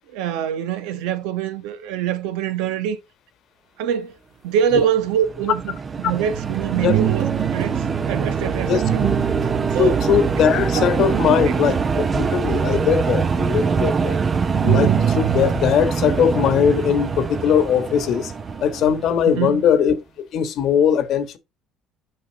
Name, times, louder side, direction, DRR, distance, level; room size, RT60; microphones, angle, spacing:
voice 1, 0.1-3.0 3.8-4.1 4.4-9.0 9.7-10.0 10.4-10.5 10.7-11.5 19.2-19.6, right 9 dB, 85° right, 1.2 m, -25 dB
sound 1, 5.1-19.6, right 5 dB, 35° right, 0.8 m, -24 dB
sound 2, 6.3-13.0 14.5-15.5, right 10 dB, 55° right, 1.7 m, -26 dB
voice 2, 9.8-14.2 14.6-18.3 18.6-19.9 20.3-21.4, left 8 dB, 60° left, 1.4 m, -20 dB
6.8 x 5.7 x 4.0 m
supercardioid pair, 90°, 0 cm